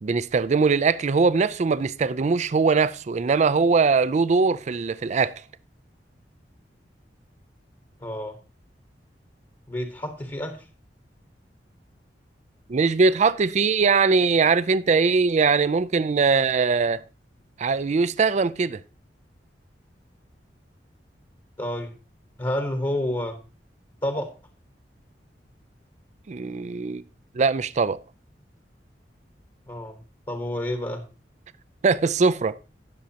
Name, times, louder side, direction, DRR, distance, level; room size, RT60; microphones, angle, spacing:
voice 1, 0.0-5.4 12.7-17.0 17.6-18.8 26.3-27.0 27.3-28.0 31.8-32.6, right 4 dB, 40° right, 0.4 m, -21 dB
voice 2, 8.0-8.4 9.7-10.6 21.6-21.9 22.4-23.4 24.0-24.3 29.7-30.0 30.3-31.0, left 1 dB, 25° left, 1.2 m, -29 dB
18.5 x 6.3 x 2.8 m
head